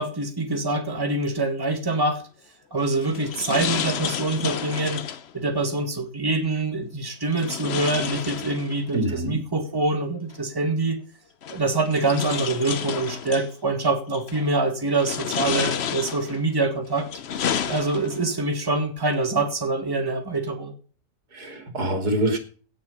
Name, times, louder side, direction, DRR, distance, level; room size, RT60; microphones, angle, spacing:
voice 1, 0.0-2.2 2.7-5.0 5.3-11.0 11.5-17.1 17.7-20.7, right 2 dB, 15° right, 5 dB, 2.0 m, -25 dB
sound 1, 2.8-5.3 7.3-9.0 10.3-10.4 11.4-13.5 14.1-14.5 14.9-16.4 16.9-18.3, left 8 dB, 50° left, 0.9 m, -30 dB
voice 2, 8.9-9.4 21.3-22.4, right 1 dB, 85° right, 6 dB, 3.2 m, -25 dB
17.0 x 6.7 x 5.5 m, 0.41 s
omnidirectional pair, 1.6 m